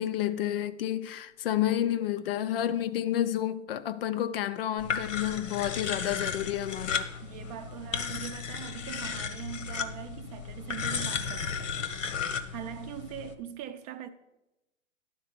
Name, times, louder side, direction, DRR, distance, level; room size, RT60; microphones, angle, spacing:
voice 1, 0.0-7.0, left 11 dB, 50° left, 0.5 m, -30 dB
sound 1, 4.8-13.3, left 6 dB, 75° left, 1.1 m, -34 dB
voice 2, 7.2-14.1, right 10 dB, 30° right, 0.6 m, -42 dB
11.0 x 4.3 x 5.8 m
hypercardioid pair, 125°, 38 cm